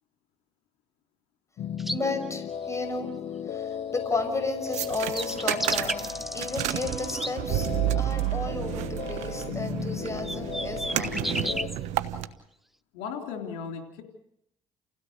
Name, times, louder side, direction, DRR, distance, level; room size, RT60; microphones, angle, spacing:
sound 1, 1.6-11.7, left 8 dB, 65° left, 1.2 m, -36 dB
sound 2, 1.8-2.0 4.8-4.9 5.1-7.3 10.1-11.8, equal, ahead, 0.8 m, -33 dB
voice 1, 1.9-7.7 8.0-11.8, left 3 dB, 25° left, 7 dB, 5.8 m, -34 dB
sound 3, 4.7-12.3, right 13 dB, 80° right, 1.2 m, -31 dB
voice 2, 12.9-14.0, left 6 dB, 90° left, 3 dB, 3.4 m, -36 dB
30.0 x 17.0 x 6.6 m, 0.76 s
supercardioid pair, 60°, 12 cm